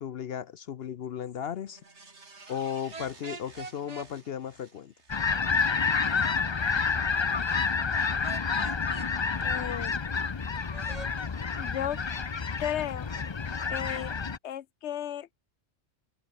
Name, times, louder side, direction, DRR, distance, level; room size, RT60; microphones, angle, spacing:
voice 1, 0.0-1.8 2.5-4.9, left 8 dB, 65° left, 0.9 m, -35 dB
sound 1, 1.7-6.2 6.6-6.7, right 3 dB, 85° right, 3.2 m, -54 dB
sound 2, 2.9-4.1 8.2-9.1 10.7-11.1, right 4 dB, 35° right, 1.4 m, -42 dB
sound 3, 5.1-14.4, left 5 dB, 30° left, 0.6 m, -29 dB
voice 2, 9.4-10.0 11.6-12.0 12.6-13.1 13.7-14.1 14.4-15.3, left 10 dB, 85° left, 1.0 m, -34 dB
open air
omnidirectional pair, 1.1 m